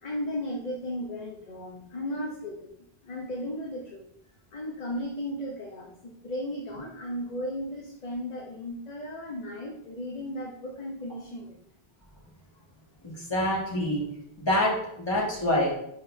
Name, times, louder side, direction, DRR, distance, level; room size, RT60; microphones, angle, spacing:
voice 1, 0.0-2.7 3.0-4.0 4.5-11.6, left 1 dB, 45° left, -2 dB, 1.0 m, -35 dB
voice 2, 13.0-14.0 14.4-15.7, left 1 dB, 25° left, -5 dB, 2.0 m, -26 dB
10.5 x 4.2 x 2.7 m, 0.75 s
omnidirectional pair, 1.0 m